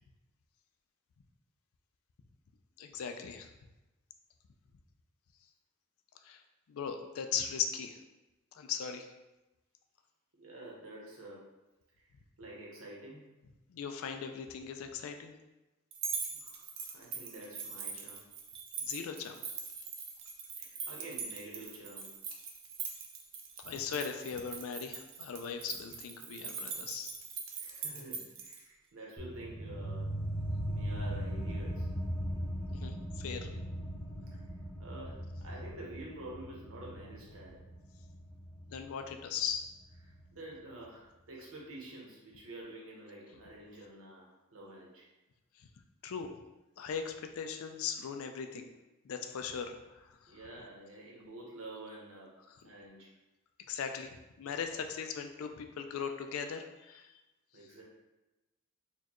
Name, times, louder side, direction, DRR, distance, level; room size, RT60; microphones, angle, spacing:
voice 1, 2.8-3.5 6.2-6.4 6.7-8.0 8.5-9.1 13.7-15.4 18.8-19.4 23.6-27.2 32.7-33.5 38.7-39.7 45.6-45.7 46.0-46.3 46.8-48.7 49.0-50.4 52.5-52.6 53.7-57.1, left 7 dB, 80° left, 6 dB, 0.4 m, -39 dB
voice 2, 10.4-11.4 12.0-12.1 12.4-13.2 16.3-18.2 20.5-22.1 27.6-30.1 30.6-31.9 34.3-34.4 34.8-37.6 40.3-45.1 50.3-52.3 52.6-53.1 57.5-57.8, right 1 dB, 80° right, -3 dB, 1.0 m, -48 dB
sound 1, 15.9-28.6, right 5 dB, 60° right, 0.5 m, -42 dB
sound 2, 29.2-40.3, equal, 10° left, 0.6 m, -39 dB
4.3 x 2.3 x 2.9 m, 1.0 s
head